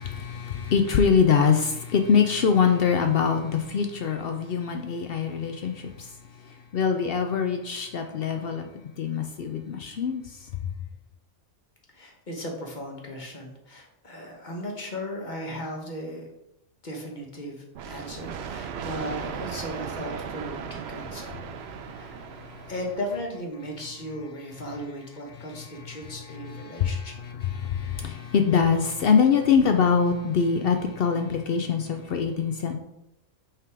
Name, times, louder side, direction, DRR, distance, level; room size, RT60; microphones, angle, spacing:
voice 1, 0.0-6.2 6.4-8.7 9.0-10.5 22.4-22.7 25.5-32.8, left 6 dB, 70° left, 5 dB, 0.5 m, -24 dB
voice 2, 11.9-16.3 16.8-21.3 21.9-22.3 22.7-27.1, equal, 35° left, 0 dB, 1.2 m, -36 dB
sound 1, 17.7-23.3, right 7 dB, 65° right, 0.7 m, -37 dB
5.7 x 3.5 x 4.7 m, 0.85 s
omnidirectional pair, 1.5 m